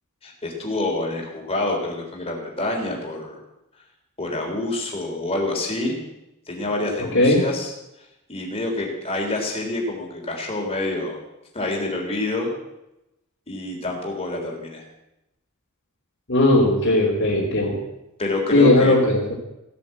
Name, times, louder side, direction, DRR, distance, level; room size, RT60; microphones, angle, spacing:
voice 1, 0.2-3.4 4.2-5.9 6.5-7.7 8.3-11.2 11.5-12.5 13.5-14.8 18.2-19.0, left 2 dB, 25° left, 0 dB, 3.6 m, -27 dB
voice 2, 7.0-7.4 16.3-17.8 18.5-19.3, left 2 dB, 55° left, -7 dB, 2.9 m, -18 dB
16.0 x 8.4 x 7.9 m, 0.90 s
head